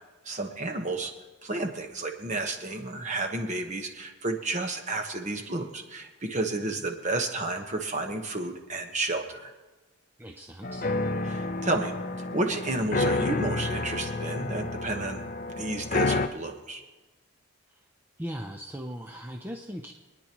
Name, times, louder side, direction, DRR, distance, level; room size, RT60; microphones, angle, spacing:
voice 1, 0.2-1.1 1.4-9.5 11.2-15.2 15.6-16.8, right 2 dB, 35° right, 4 dB, 1.2 m, -31 dB
voice 2, 10.2-10.9 17.7-17.8 18.2-19.9, equal, 10° right, 2 dB, 0.6 m, -38 dB
sound 1, 10.6-16.3, left 3 dB, 40° left, 0.5 m, -30 dB
26.0 x 10.0 x 3.0 m, 1.2 s
head